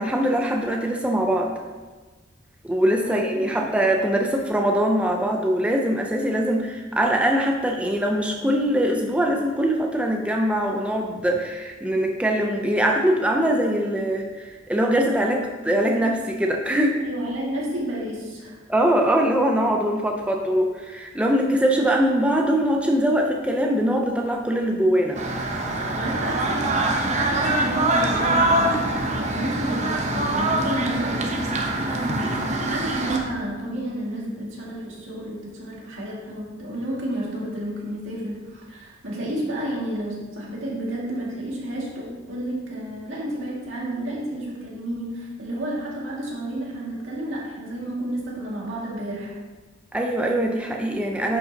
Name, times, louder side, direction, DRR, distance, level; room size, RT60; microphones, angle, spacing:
voice 1, 0.0-1.5 2.6-17.0 18.7-25.2 49.9-51.4, right 1 dB, 5° right, 1 dB, 0.5 m, -22 dB
voice 2, 3.0-3.7 17.0-18.6 26.0-26.6 27.3-28.6 29.1-31.5 31.8-49.4, right 1 dB, 80° right, -4 dB, 2.1 m, -31 dB
sound 1, 25.1-33.2, right 2 dB, 35° right, 0.8 m, -24 dB
11.0 x 5.3 x 2.8 m, 1.3 s
head